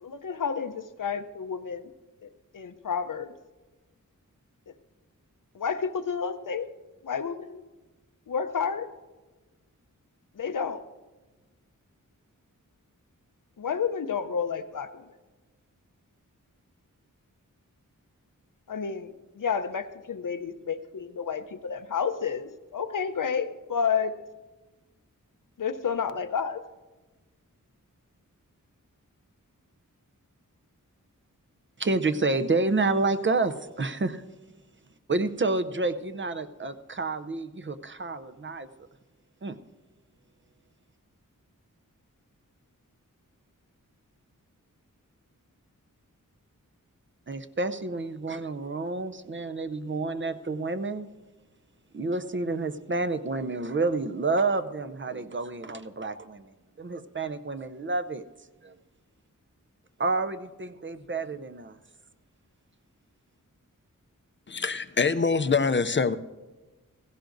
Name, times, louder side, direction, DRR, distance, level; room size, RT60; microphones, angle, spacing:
voice 1, 0.0-1.9 2.2-3.3 5.5-6.7 7.0-7.6 8.3-8.9 10.3-10.8 13.6-15.1 18.7-24.1 25.6-26.6, left 6 dB, 70° left, 10 dB, 0.7 m, -30 dB
voice 2, 31.8-34.2 35.1-38.7 39.4-39.6 47.3-51.1 51.9-58.2 58.6-58.7 60.0-61.8, right 3 dB, 35° right, 10 dB, 0.6 m, -29 dB
voice 3, 64.5-66.1, left 4 dB, 35° left, 12 dB, 0.5 m, -24 dB
16.0 x 16.0 x 2.6 m, 1.2 s
wide cardioid pair, 90°, 33 cm